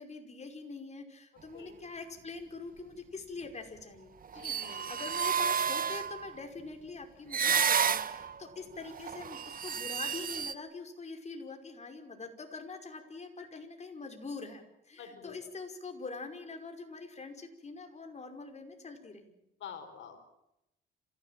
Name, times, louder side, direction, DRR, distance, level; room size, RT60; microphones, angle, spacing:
voice 1, 0.0-19.3, left 4 dB, 35° left, 4 dB, 5.3 m, -44 dB
sound 1, 4.2-6.3 7.3-8.4 8.8-10.5, right 7 dB, 45° right, 1.3 m, -31 dB
voice 2, 4.3-4.9 8.6-8.7 13.4-13.5 15.0-15.5 19.6-20.2, left 7 dB, 70° left, 7 dB, 5.0 m, -48 dB
27.5 x 16.0 x 9.0 m, 0.84 s
cardioid pair, 90°, 20 cm